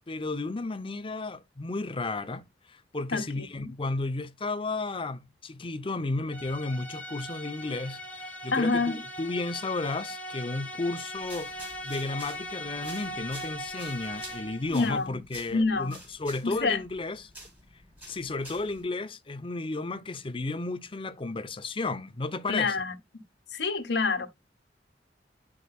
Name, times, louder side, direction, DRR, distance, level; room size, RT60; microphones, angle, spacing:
voice 1, 0.1-17.3 18.1-22.8, left 2 dB, 30° left, 0.6 m, -33 dB
voice 2, 3.1-3.7 8.5-9.0 14.7-15.2 15.5-16.0 16.4-16.8 22.5-23.2 23.5-24.3, left 4 dB, 75° left, 1.2 m, -28 dB
sound 1, 6.3-14.8, equal, 10° left, 1.1 m, -39 dB
sound 2, 11.1-18.8, equal, 10° right, 4.0 m, -49 dB
10.5 x 4.9 x 2.3 m
head